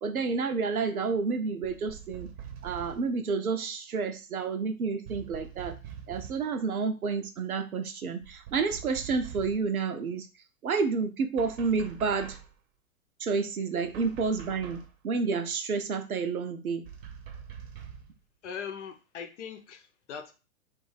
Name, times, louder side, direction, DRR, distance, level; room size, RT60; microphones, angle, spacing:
voice 1, 0.0-2.3 2.6-5.8 6.1-10.3 10.6-12.4 13.2-16.9, right 5 dB, 80° right, 7 dB, 0.8 m, -30 dB
sound 1, 1.6-3.1 5.1-6.5 8.2-9.7 11.4-12.6 13.9-15.0 16.9-18.2, right 8 dB, 45° right, 0.8 m, -44 dB
voice 2, 18.4-20.3, left 7 dB, 55° left, 6 dB, 0.8 m, -40 dB
2.7 x 2.6 x 3.9 m, 0.31 s
figure-of-eight pair, 110°, 42 cm